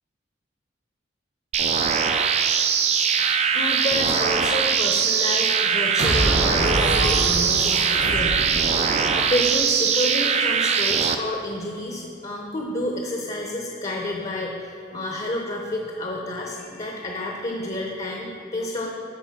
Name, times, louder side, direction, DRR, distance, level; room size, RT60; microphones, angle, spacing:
sound 1, 1.5-11.2, right 6 dB, 35° right, 0.4 m, -21 dB
voice 1, 3.5-8.4 8.7-8.8 9.1-18.9, left 1 dB, 35° left, 0 dB, 0.7 m, -29 dB
sound 2, 6.0-9.4, right 1 dB, 60° right, 1.0 m, -26 dB
10.0 x 4.5 x 5.9 m, 2.5 s
head